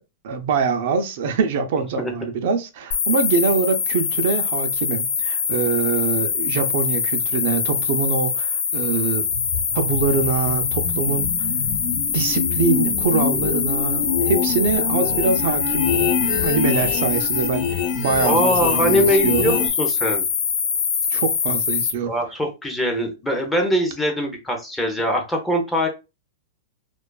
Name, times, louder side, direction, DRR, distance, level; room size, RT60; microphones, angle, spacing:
voice 1, 0.2-9.3 9.7-11.5 12.1-19.6 21.1-22.1, right 5 dB, 60° right, 0.4 m, -24 dB
sound 1, 2.9-21.9, left 6 dB, 65° left, 0.6 m, -24 dB
sound 2, 9.3-19.7, left 6 dB, 50° left, 1.0 m, -26 dB
voice 2, 18.2-20.3 22.1-25.9, equal, 5° left, 0.5 m, -22 dB
2.5 x 2.2 x 2.2 m
hypercardioid pair, 150°, 0 cm